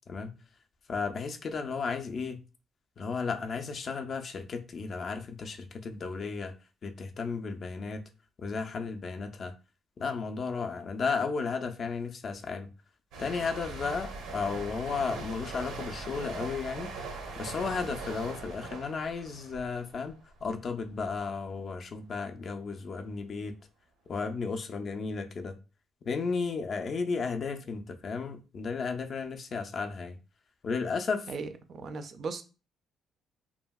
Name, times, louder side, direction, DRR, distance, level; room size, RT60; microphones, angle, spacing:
voice 1, 0.9-2.4 3.0-6.5 6.8-8.0 8.4-9.5 10.0-12.7 13.2-16.9 17.4-20.1 20.4-23.5 24.1-25.5 26.1-30.2 30.6-31.3, left 5 dB, 40° left, 0.3 m, -34 dB
sound 1, 13.1-20.6 20.9-21.2, right 3 dB, 90° right, 0.6 m, -41 dB
voice 2, 31.3-32.4, right 4 dB, 45° right, 0.3 m, -37 dB
2.7 x 2.6 x 2.2 m
cardioid pair, 150°, 0 cm